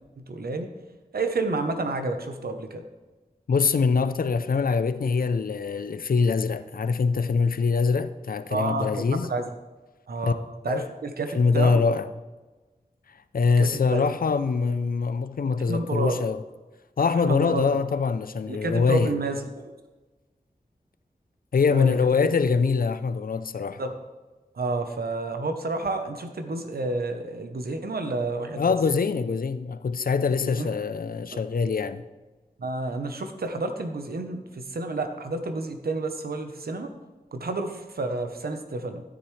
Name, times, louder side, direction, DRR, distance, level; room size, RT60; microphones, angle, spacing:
voice 1, 0.3-0.7 1.1-2.8 8.5-9.5 10.1-10.4 10.6-11.8 13.6-14.1 15.7-16.2 17.2-17.7 18.5-19.7 21.7-22.0 23.8-23.9 24.5-28.7 30.6-30.7 31.3-31.4 32.6-36.9 37.3-39.0, right 3 dB, 90° right, 0.9 m, -30 dB
voice 2, 3.5-9.3 10.2-10.3 10.7-10.9 11.3-12.1 13.3-16.4 17.0-19.2 21.5-23.8 28.6-32.0, left 5 dB, 70° left, 0.5 m, -24 dB
12.5 x 10.0 x 3.3 m
wide cardioid pair, 85°, 15 cm